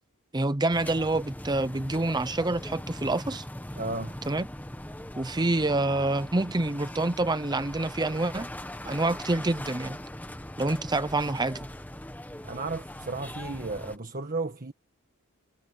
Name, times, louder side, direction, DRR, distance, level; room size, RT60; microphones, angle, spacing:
voice 1, 0.3-3.5 4.3-4.5 5.2-8.5 8.8-10.0 10.6-11.7, right 2 dB, 20° right, 0.7 m, -27 dB
sound 1, 0.7-14.0, left 1 dB, 10° left, 1.2 m, -40 dB
voice 2, 3.7-4.2 12.4-14.7, right 3 dB, 40° right, 1.5 m, -34 dB
head